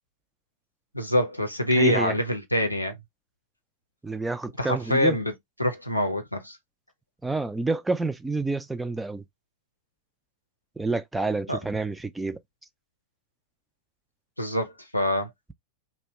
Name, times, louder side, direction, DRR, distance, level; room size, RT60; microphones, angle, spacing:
voice 1, 0.9-3.0 4.6-5.3 5.6-6.6 11.5-11.6 14.4-15.3, left 1 dB, 85° left, 0.6 m, -25 dB
voice 2, 1.8-2.2 4.0-5.2 7.2-9.2 10.8-12.4, right 3 dB, 10° right, 0.4 m, -28 dB
2.7 x 2.1 x 3.2 m
figure-of-eight pair, 90°, 0 cm